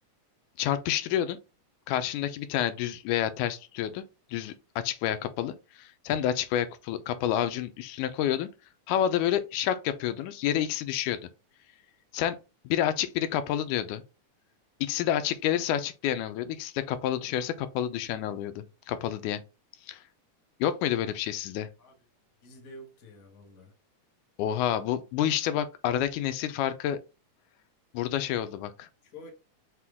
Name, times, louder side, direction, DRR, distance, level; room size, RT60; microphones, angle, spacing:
voice 1, 0.6-1.4 1.9-4.0 4.3-8.5 8.9-11.2 12.1-12.4 12.7-14.0 14.8-19.4 19.9-20.0 20.6-21.7 24.4-27.0 27.9-28.9, left 11 dB, 85° left, 2.0 m, -29 dB
voice 2, 22.4-23.7 29.0-29.3, left 1 dB, 55° left, 0.9 m, -48 dB
5.9 x 2.2 x 3.5 m
omnidirectional pair, 3.5 m